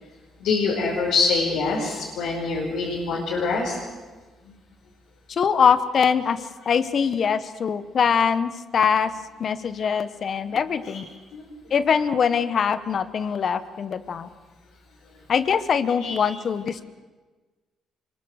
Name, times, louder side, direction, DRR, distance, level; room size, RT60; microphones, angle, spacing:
voice 1, 0.4-3.8 4.4-4.5 10.5-10.6 11.3-11.4 16.0-16.1, left 4 dB, 85° left, -5 dB, 5.2 m, -25 dB
voice 2, 5.3-9.1 9.4-11.1 11.7-14.3 15.3-16.8, left 7 dB, 55° left, 13 dB, 1.3 m, -23 dB
25.0 x 23.0 x 6.7 m, 1.3 s
cardioid pair, 75°, 0 cm